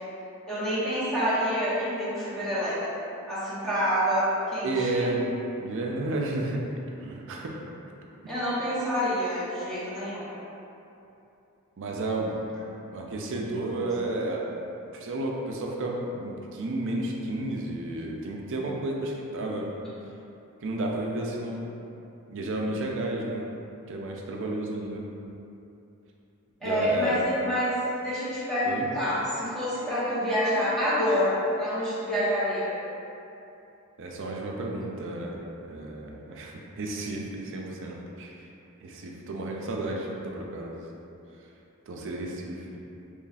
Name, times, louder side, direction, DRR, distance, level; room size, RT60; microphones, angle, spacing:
voice 1, 0.5-2.8 3.3-5.1 8.3-10.3 26.6-32.7, equal, ahead, -13 dB, 1.0 m, -27 dB
voice 2, 4.6-5.3 5.6-6.6 7.0-7.5 11.8-12.4 12.9-14.5 14.9-19.7 20.6-21.7 22.3-23.5 23.9-25.1 26.6-27.2 28.6-28.9 34.0-38.3 38.8-40.9 41.9-42.7, right 2 dB, 60° right, -1 dB, 0.5 m, -32 dB
3.1 x 2.4 x 4.0 m, 2.8 s
head